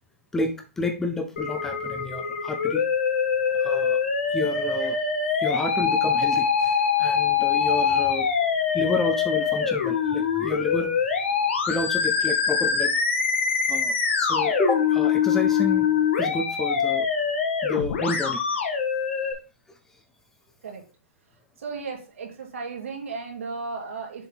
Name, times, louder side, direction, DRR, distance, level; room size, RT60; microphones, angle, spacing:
voice 1, 0.3-2.8 3.5-4.0 4.3-5.0 5.4-8.3 8.7-10.9 11.7-12.9 13.7-15.9 16.2-17.1 17.6-18.4, left 3 dB, 5° left, 6 dB, 0.4 m, -30 dB
Musical instrument, 1.4-19.3, left 6 dB, 60° left, 1.5 m, -24 dB
voice 2, 21.6-24.3, right 4 dB, 75° right, 1 dB, 2.4 m, -35 dB
7.1 x 3.8 x 4.4 m, 0.33 s
hypercardioid pair, 160°, 7 cm